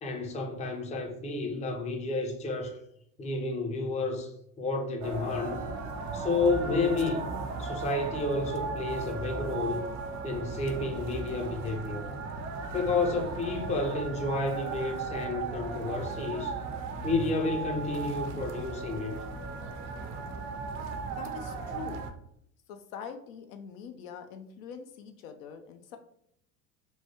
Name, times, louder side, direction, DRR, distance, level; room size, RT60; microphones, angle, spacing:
voice 1, 0.0-2.8 3.2-5.7 6.1-7.3 7.6-9.8 10.2-12.0 12.7-16.5 17.0-19.1, left 3 dB, 15° left, 0.5 m, -31 dB
sound 1, 5.0-22.1, right 4 dB, 40° right, 0.5 m, -36 dB
voice 2, 21.2-22.0 22.7-26.0, left 7 dB, 65° left, 0.5 m, -43 dB
3.0 x 2.2 x 2.8 m
hypercardioid pair, 80°, 45 cm